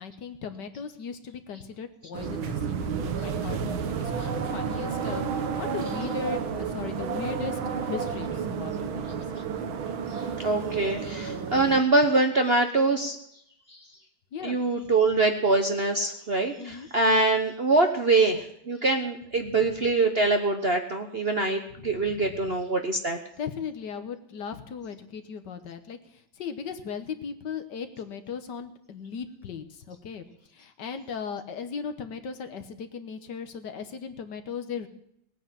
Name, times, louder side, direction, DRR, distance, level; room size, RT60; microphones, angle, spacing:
voice 1, 0.0-9.2 14.3-14.6 16.6-16.9 21.8-22.5 23.4-30.2 30.5-34.9, left 6 dB, 60° left, 8 dB, 1.6 m, -37 dB
sound 1, 2.1-11.8, right 6 dB, 90° right, 1.9 m, -31 dB
voice 2, 10.1-13.2 13.7-13.8 14.4-23.2, right 3 dB, 40° right, 5 dB, 0.9 m, -24 dB
19.0 x 9.1 x 7.5 m, 0.73 s
omnidirectional pair, 2.2 m